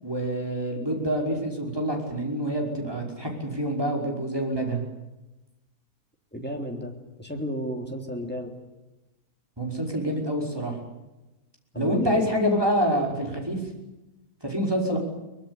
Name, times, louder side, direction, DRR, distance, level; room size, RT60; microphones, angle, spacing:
voice 1, 0.0-4.8 9.6-10.8 11.8-13.6 14.4-15.0, equal, 15° right, 0 dB, 5.5 m, -26 dB
voice 2, 6.3-6.9 7.2-8.5 11.7-12.2, equal, 5° left, 2 dB, 3.4 m, -32 dB
23.5 x 21.5 x 9.8 m, 1.0 s
omnidirectional pair, 1.6 m